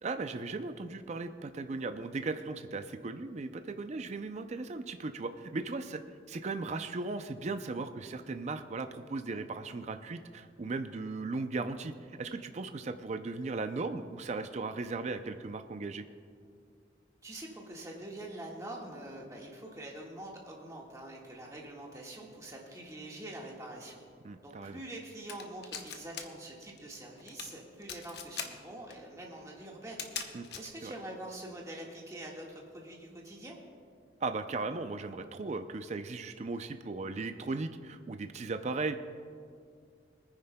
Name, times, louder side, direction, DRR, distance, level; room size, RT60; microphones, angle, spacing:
voice 1, 0.0-6.0 6.3-16.1 24.2-24.8 30.3-30.5 30.8-30.9 34.2-39.0, right 3 dB, 40° right, 9 dB, 0.4 m, -37 dB
voice 2, 17.2-24.0 24.4-30.1 30.5-33.6, right 1 dB, 20° right, -2 dB, 1.6 m, -45 dB
sound 1, 25.3-26.2 26.5-26.8 27.2-27.5 27.8-28.5 28.9-29.0 29.8-30.7, left 7 dB, 60° left, 0.9 m, -39 dB
24.5 x 9.7 x 2.2 m, 2.3 s
head